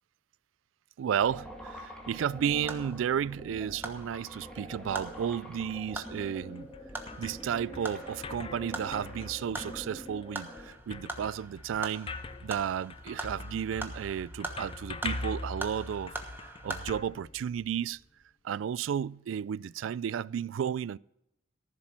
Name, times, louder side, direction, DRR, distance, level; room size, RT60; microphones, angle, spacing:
voice 1, 1.0-6.7 7.2-12.1 12.4-16.1 16.4-18.0 18.4-21.0, right 8 dB, 80° right, 0.3 m, -33 dB
sound 1, 1.2-10.7, equal, 5° left, 2.1 m, -45 dB
sound 2, 2.7-16.9, right 2 dB, 10° right, 1.2 m, -44 dB
sound 3, 6.4-17.9, left 3 dB, 30° left, 0.6 m, -42 dB
14.5 x 7.4 x 5.9 m
head